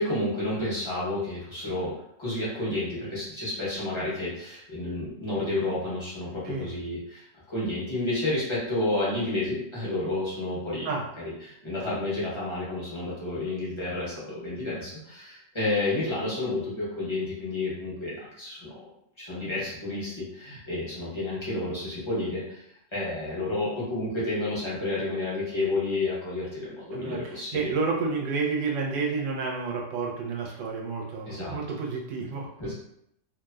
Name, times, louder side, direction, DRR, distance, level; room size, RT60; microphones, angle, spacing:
voice 1, 0.0-1.9 2.2-10.9 11.2-18.8 19.2-22.6 22.9-27.7 31.3-31.6 32.6-32.7, left 2 dB, 30° left, -9 dB, 0.5 m, -30 dB
voice 2, 26.9-32.5, right 4 dB, 90° right, -1 dB, 1.3 m, -30 dB
3.1 x 2.0 x 2.3 m, 0.75 s
omnidirectional pair, 1.9 m